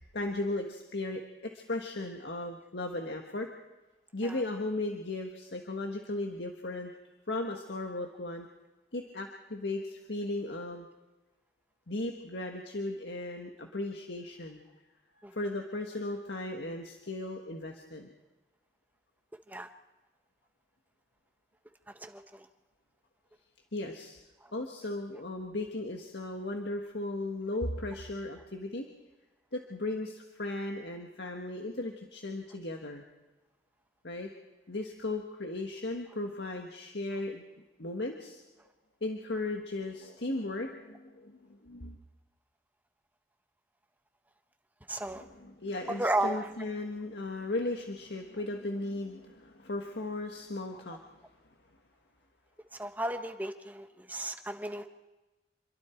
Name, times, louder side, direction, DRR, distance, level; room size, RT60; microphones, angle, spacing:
voice 1, 0.0-3.5 4.1-6.9 7.3-8.5 8.9-10.9 11.9-14.6 15.2-18.1 23.7-24.2 24.5-28.9 29.5-33.0 34.0-34.3 34.7-37.4 37.8-38.4 39.0-42.0 45.1-51.0, left 2 dB, 75° left, 3 dB, 1.7 m, -36 dB
voice 2, 21.9-22.5 24.4-24.5 44.9-45.2 45.9-46.5 52.7-54.9, right 1 dB, 10° right, 7 dB, 1.2 m, -34 dB
27.5 x 22.5 x 4.6 m, 1.1 s
head